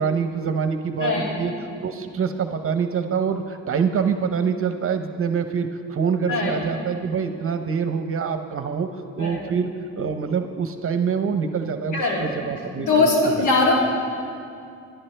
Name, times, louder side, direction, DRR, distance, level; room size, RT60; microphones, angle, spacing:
voice 1, 0.0-1.5 1.8-8.9 9.2-9.7 10.0-13.5, right 6 dB, 45° right, 7 dB, 0.9 m, -25 dB
voice 2, 1.0-1.3 6.3-6.6 9.2-9.5 11.9-12.3 12.8-13.7, left 3 dB, 80° left, -3 dB, 3.1 m, -21 dB
23.0 x 11.0 x 3.4 m, 2.4 s
cardioid pair, 90°, 30 cm